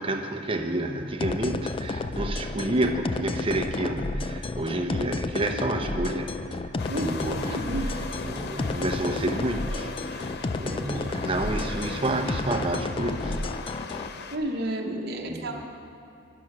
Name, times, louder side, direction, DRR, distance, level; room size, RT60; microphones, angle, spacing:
voice 1, 0.0-8.0 8.3-10.3 10.6-13.5 15.3-15.6, right 1 dB, 30° right, 4 dB, 0.9 m, -30 dB
sound 1, 1.2-14.1, left 3 dB, 30° left, 0.4 m, -31 dB
sound 2, 6.8-14.4, left 4 dB, 60° left, 0.7 m, -39 dB
voice 2, 7.5-7.9 10.6-11.1 14.3-15.6, right 1 dB, 55° right, 1 dB, 1.0 m, -31 dB
11.5 x 11.0 x 6.0 m, 2.8 s
head